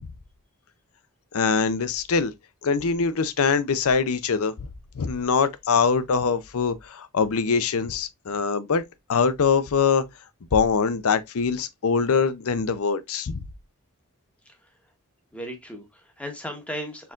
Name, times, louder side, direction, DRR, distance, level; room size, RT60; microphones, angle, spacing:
voice 1, 1.3-2.3 2.6-4.7 5.0-8.8 9.1-10.1 10.5-13.4, left 5 dB, 70° left, 0.5 m, -23 dB
voice 2, 14.4-14.9 15.3-17.1, equal, 5° left, 1.0 m, -37 dB
4.6 x 3.7 x 2.4 m
head